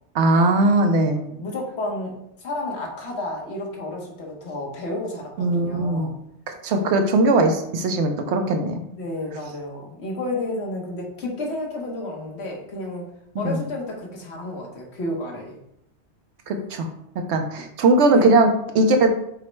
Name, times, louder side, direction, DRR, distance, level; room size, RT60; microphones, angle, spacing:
voice 1, 0.1-1.2 5.4-6.2 6.5-8.8 13.3-13.6 16.5-16.9 17.3-18.5 18.7-19.1, right 2 dB, 75° right, 5 dB, 0.9 m, -19 dB
voice 2, 1.1-2.1 2.4-6.1 8.9-13.1 13.4-15.6 18.1-18.3, left 2 dB, 70° left, 0 dB, 1.2 m, -31 dB
5.2 x 2.1 x 4.3 m, 0.76 s
omnidirectional pair, 1.2 m